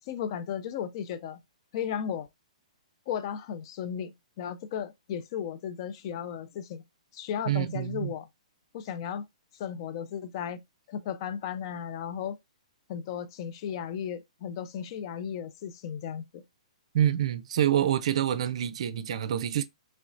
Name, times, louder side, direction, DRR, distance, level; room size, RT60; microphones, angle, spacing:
voice 1, 0.1-1.4 1.7-2.3 3.1-6.8 7.1-8.3 8.7-9.3 9.6-10.6 10.9-12.4 12.9-16.4, left 8 dB, 40° left, 0.4 m, -35 dB
voice 2, 7.5-8.1 16.9-19.6, right 10 dB, 55° right, 0.4 m, -27 dB
3.1 x 2.9 x 2.5 m
hypercardioid pair, 125°, 4 cm